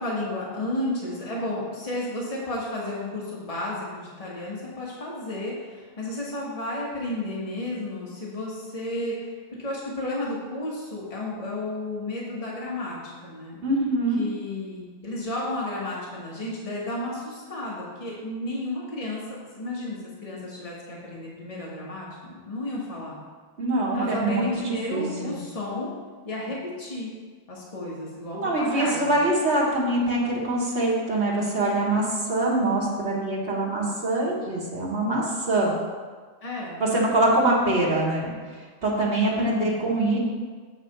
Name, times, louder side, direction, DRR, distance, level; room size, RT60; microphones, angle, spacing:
voice 1, 0.0-9.3 9.6-13.6 14.2-19.2 19.5-23.2 23.9-25.9 26.2-27.1 27.5-29.1 36.4-36.8 39.1-39.9, left 1 dB, 35° left, -5 dB, 1.5 m, -32 dB
voice 2, 13.6-14.2 23.6-25.4 28.3-35.7 36.8-40.2, right 2 dB, 90° right, -5 dB, 1.7 m, -24 dB
8.2 x 3.3 x 6.5 m, 1.5 s
omnidirectional pair, 1.1 m